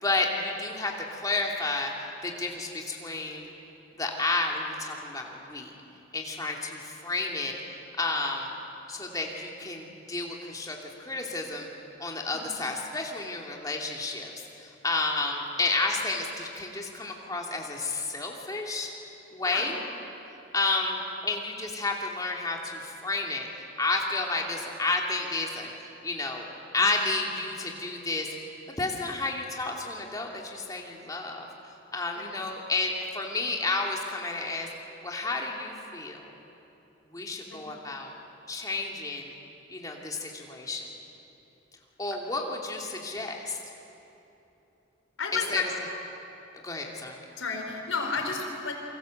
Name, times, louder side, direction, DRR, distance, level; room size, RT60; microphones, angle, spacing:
voice 1, 0.0-3.5 4.0-5.7 6.1-7.6 8.0-8.5 8.9-11.7 12.0-18.9 19.3-19.8 20.5-23.5 23.8-25.7 26.0-26.5 26.7-28.3 28.8-31.5 31.9-34.7 35.0-36.3 37.1-38.1 38.5-39.3 39.7-40.9 42.0-43.6 45.3-45.6 46.5-47.2, left 3 dB, 20° left, 0 dB, 2.7 m, -31 dB
voice 2, 19.4-19.8 32.1-32.3 37.4-37.8 45.2-45.7 47.4-48.7, left 4 dB, 80° left, 2 dB, 4.8 m, -32 dB
28.0 x 24.5 x 7.9 m, 3.0 s
head